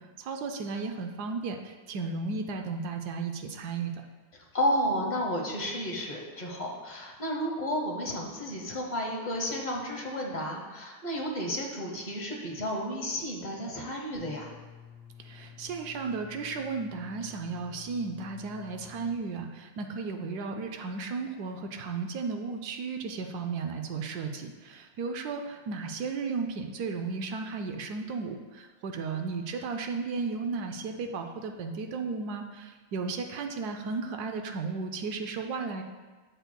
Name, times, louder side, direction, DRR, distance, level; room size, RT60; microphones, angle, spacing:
voice 1, 0.0-3.9 15.2-35.8, right 4 dB, 70° right, 4 dB, 1.0 m, -34 dB
voice 2, 4.5-14.5, equal, 35° left, -1 dB, 0.7 m, -32 dB
sound 1, 14.1-19.1, left 8 dB, 80° left, 2.0 m, -50 dB
7.9 x 7.9 x 2.2 m, 1.3 s
omnidirectional pair, 2.0 m